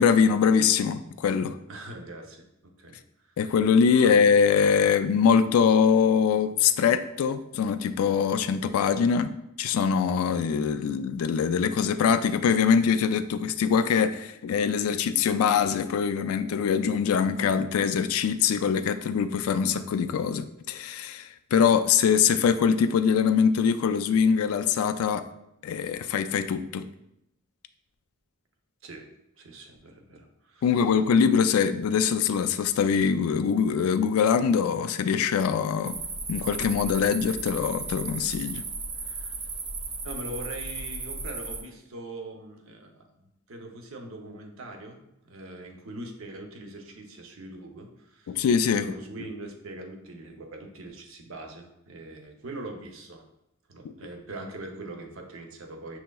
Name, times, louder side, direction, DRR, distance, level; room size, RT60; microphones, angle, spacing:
voice 1, 0.0-1.6 3.4-25.2 25.6-26.9 30.6-36.0 36.3-38.6 48.3-48.8, left 6 dB, 85° left, 12 dB, 0.3 m, -23 dB
voice 2, 1.7-3.0 4.0-4.1 4.8-4.9 28.8-29.1 29.4-30.8 40.0-45.0 45.2-48.4 48.7-53.2 53.7-56.0, right 1 dB, 65° right, 3 dB, 0.7 m, -42 dB
sound 1, 35.8-41.6, right 4 dB, 25° right, 0.4 m, -35 dB
6.3 x 2.9 x 2.3 m, 0.83 s
head